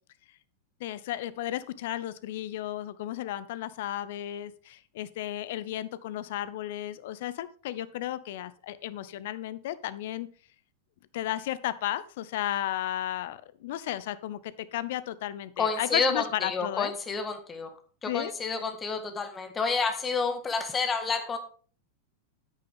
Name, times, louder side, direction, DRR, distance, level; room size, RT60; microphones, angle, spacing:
voice 1, 0.8-10.3 11.1-16.9 18.1-18.3, left 13 dB, 55° left, 16 dB, 0.7 m, -34 dB
voice 2, 15.6-17.7 18.0-21.4, left 4 dB, 20° left, 7 dB, 1.7 m, -29 dB
9.9 x 9.2 x 3.5 m, 0.40 s
figure-of-eight pair, 90°, 0 cm